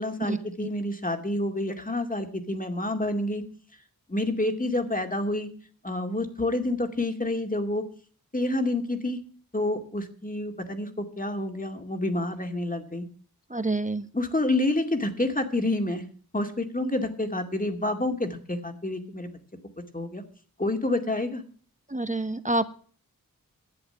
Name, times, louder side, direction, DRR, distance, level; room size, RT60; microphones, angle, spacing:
voice 1, 0.0-3.4 4.1-5.5 5.8-7.8 8.3-9.2 9.5-13.0 14.1-16.0 16.3-19.3 19.9-20.2 20.6-21.4, left 1 dB, 25° left, 6 dB, 2.3 m, -28 dB
voice 2, 13.5-14.0 21.9-22.7, right 2 dB, 20° right, 11 dB, 1.0 m, -27 dB
11.0 x 7.8 x 8.1 m, 0.43 s
cardioid pair, 45°, 35 cm